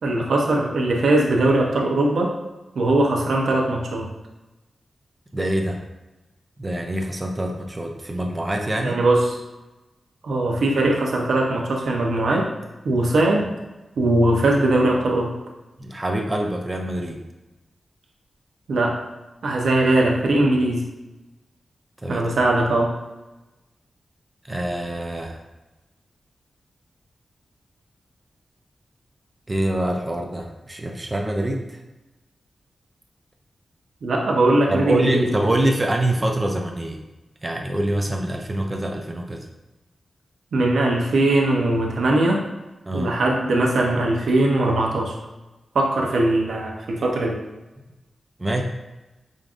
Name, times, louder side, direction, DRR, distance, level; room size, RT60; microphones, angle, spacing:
voice 1, 0.0-2.3 2.8-4.1 8.8-9.2 10.2-12.4 12.8-13.5 14.0-15.4 18.7-19.0 19.4-20.8 22.1-22.9 34.0-35.3 40.5-42.4 42.9-45.2 45.7-47.4, right 2 dB, 85° right, 0 dB, 0.6 m, -20 dB
voice 2, 5.3-5.8 6.6-9.0 15.8-17.2 22.0-22.3 24.4-25.4 29.5-31.8 34.7-37.0 37.4-39.5 42.9-43.1 48.4-48.6, right 1 dB, 25° right, 2 dB, 0.4 m, -25 dB
5.1 x 2.5 x 2.4 m, 1.1 s
wide cardioid pair, 100°, 0 cm